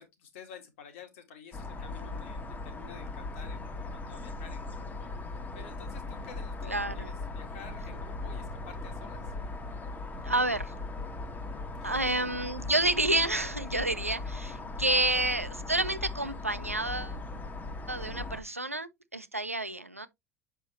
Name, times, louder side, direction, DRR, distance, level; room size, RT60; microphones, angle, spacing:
voice 1, 0.0-9.3 11.7-12.1 14.4-14.6 15.2-15.4, left 6 dB, 65° left, 2.0 m, -51 dB
sound 1, 1.5-18.4, left 3 dB, 25° left, 1.3 m, -39 dB
voice 2, 6.7-7.1 10.2-10.7 11.8-17.2 17.9-20.1, right 2 dB, 90° right, 0.7 m, -29 dB
7.1 x 5.5 x 3.0 m
figure-of-eight pair, 70°, 7 cm